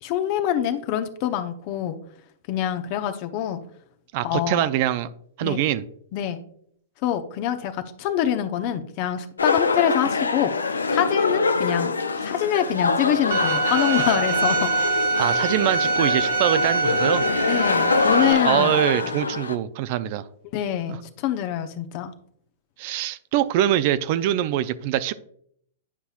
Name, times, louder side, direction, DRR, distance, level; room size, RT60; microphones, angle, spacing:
voice 1, 0.0-2.0 2.5-3.6 4.2-4.7 5.4-5.6 6.1-6.4 7.0-10.5 10.9-11.9 12.2-14.7 17.5-18.7 20.5-22.1, left 10 dB, 45° left, 0.7 m, -25 dB
voice 2, 4.1-5.1 5.4-5.8 15.2-17.2 18.4-20.3 22.8-25.1, right 12 dB, 50° right, 0.4 m, -23 dB
sound 1, 9.4-19.6, left 4 dB, 85° left, 0.5 m, -24 dB
Bowed string instrument, 13.3-18.3, right 4 dB, 70° right, 1.2 m, -24 dB
9.6 x 5.5 x 2.4 m
hypercardioid pair, 110°, 0 cm